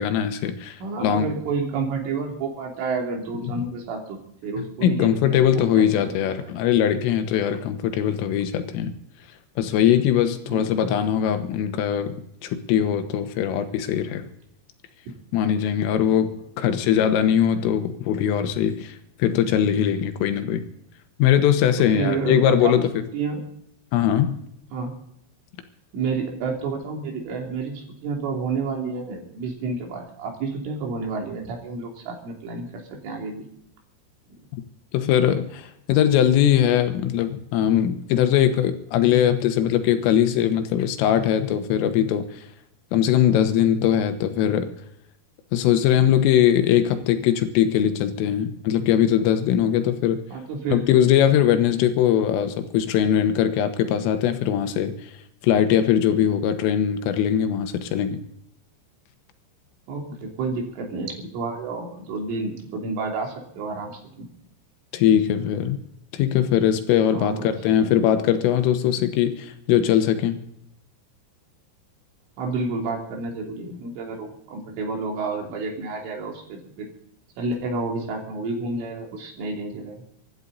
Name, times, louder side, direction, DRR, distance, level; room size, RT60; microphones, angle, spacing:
voice 1, 0.0-1.3 3.4-3.7 4.8-8.9 9.6-12.2 12.4-14.3 15.3-16.3 16.6-19.0 19.2-20.6 21.2-22.9 23.9-24.4 34.9-42.4 42.9-44.7 45.5-50.2 50.7-55.1 55.4-58.2 64.9-65.8 66.1-70.4, left 10 dB, 80° left, 8 dB, 3.7 m, -21 dB
voice 2, 0.8-6.2 10.4-10.9 15.1-15.2 15.8-15.9 16.6-16.9 21.8-22.8 23.1-23.4 24.7-25.0 25.9-33.5 50.3-50.9 59.9-64.3 67.1-67.9 68.9-69.2 72.4-76.9 77.4-80.0, right 4 dB, 70° right, 1 dB, 5.4 m, -30 dB
25.0 x 12.5 x 4.0 m, 0.76 s
omnidirectional pair, 5.9 m